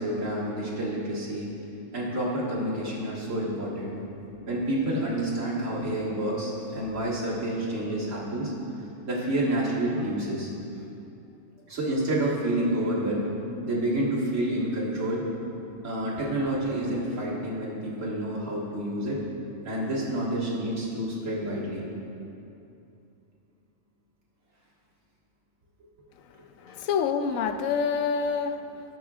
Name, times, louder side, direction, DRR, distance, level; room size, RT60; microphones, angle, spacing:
voice 1, 0.0-1.5 1.9-4.0 4.5-8.5 9.1-10.5 11.7-13.3 13.6-15.2 15.8-19.2 19.6-21.9, right 1 dB, 75° right, -6 dB, 2.1 m, -29 dB
voice 2, 26.6-28.6, left 6 dB, 90° left, 8 dB, 1.0 m, -27 dB
17.5 x 6.2 x 2.4 m, 2.8 s
omnidirectional pair, 1.4 m